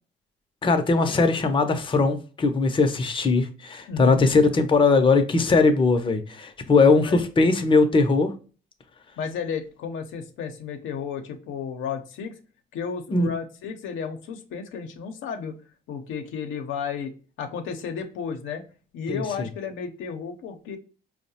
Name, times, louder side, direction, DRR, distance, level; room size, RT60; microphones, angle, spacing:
voice 1, 0.6-8.3 13.1-13.3 19.1-19.5, left 3 dB, 25° left, 0.6 m, -20 dB
voice 2, 3.9-4.2 6.6-7.2 9.2-12.3 12.7-15.5 15.9-17.1 17.4-18.6 18.9-20.8, left 6 dB, 85° left, 0.6 m, -33 dB
4.5 x 2.1 x 2.7 m
cardioid pair, 90°, 20 cm